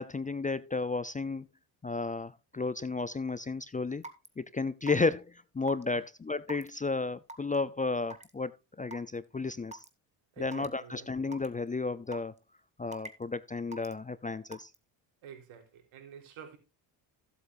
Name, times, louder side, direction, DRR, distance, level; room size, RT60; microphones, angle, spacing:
voice 1, 0.0-1.5 1.8-4.0 4.4-5.2 5.5-8.5 8.8-9.8 10.4-12.3 12.8-14.7, left 3 dB, 15° left, 0.5 m, -33 dB
Raindrop / Water tap faucet / Drip, 4.0-4.3 4.9-5.1 5.7-5.8 6.5-6.7 7.3-7.6 8.1-8.3 8.9-9.0 9.7-9.9 10.5-10.7 11.3-11.5 12.1-12.4 12.9-13.2 13.7-13.9 14.5-14.8, right 2 dB, 15° right, 1.8 m, -44 dB
voice 2, 10.3-11.1 15.2-16.6, right 8 dB, 70° right, 3.9 m, -49 dB
15.5 x 8.3 x 2.6 m
supercardioid pair, 75°, 50 cm